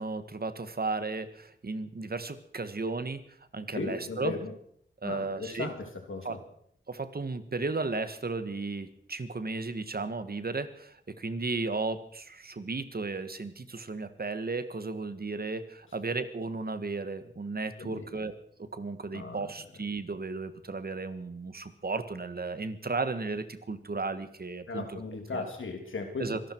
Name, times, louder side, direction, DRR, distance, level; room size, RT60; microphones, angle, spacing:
voice 1, 0.0-3.2 3.5-4.3 5.0-5.7 6.2-6.4 6.9-25.0 25.3-25.5 26.2-26.5, right 3 dB, 50° right, 11 dB, 1.5 m, -34 dB
voice 2, 3.7-4.5 5.0-6.4 17.8-18.1 19.1-19.5 24.7-26.3, left 4 dB, 85° left, 4 dB, 3.0 m, -37 dB
25.0 x 12.0 x 4.6 m, 0.65 s
cardioid pair, 55°, 20 cm